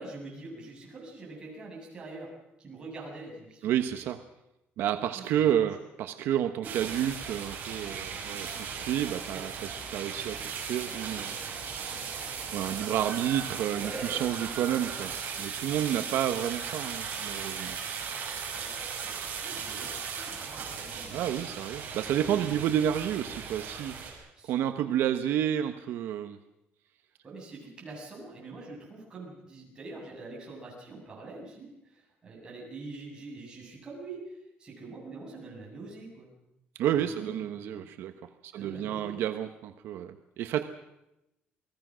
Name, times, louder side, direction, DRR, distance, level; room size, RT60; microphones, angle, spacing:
voice 1, 0.0-3.8 5.0-5.8 6.6-6.7 9.3-9.4 12.7-13.0 13.7-14.6 16.0-16.2 18.5-21.3 22.3-22.5 24.4-24.5 27.2-36.3 36.9-37.9 38.5-39.2, right 3 dB, 20° right, -2 dB, 7.7 m, -45 dB
voice 2, 3.6-4.2 4.8-12.2 12.5-17.8 21.1-26.4 36.8-40.6, right 10 dB, 75° right, 8 dB, 1.1 m, -30 dB
sound 1, 6.6-24.1, right 6 dB, 45° right, 6.0 m, -37 dB
29.0 x 19.5 x 6.3 m, 0.88 s
cardioid pair, 180°, 4 cm